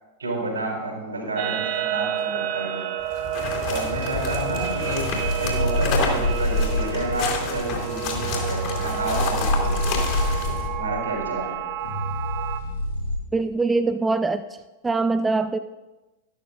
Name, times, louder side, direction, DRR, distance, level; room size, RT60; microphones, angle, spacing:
voice 1, 0.2-2.9 3.6-5.1 5.4-10.3 10.7-11.6, right 1 dB, 80° right, -1 dB, 3.4 m, -30 dB
sound 1, 1.4-12.6, right 11 dB, 50° right, 0.7 m, -30 dB
sound 2, 3.0-10.7, left 5 dB, 45° left, 2.8 m, -30 dB
sound 3, 5.0-13.2, left 1 dB, 75° left, 2.3 m, -27 dB
voice 2, 13.3-14.5 14.8-15.6, right 3 dB, 10° right, 10 dB, 0.4 m, -23 dB
13.5 x 11.5 x 2.5 m, 1.1 s
figure-of-eight pair, 90°, 0 cm